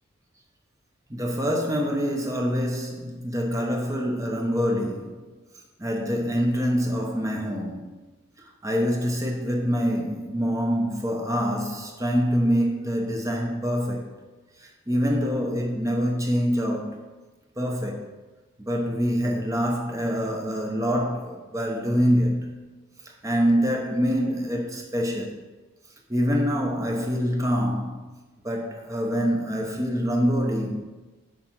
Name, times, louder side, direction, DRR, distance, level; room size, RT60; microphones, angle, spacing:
voice 1, 1.1-5.3 5.8-7.9 8.6-14.1 14.6-17.0 17.6-18.0 18.6-22.6 23.2-25.4 26.1-28.1 28.4-30.8, equal, 15° right, 0.8 m, -25 dB
7.4 x 5.2 x 4.6 m
head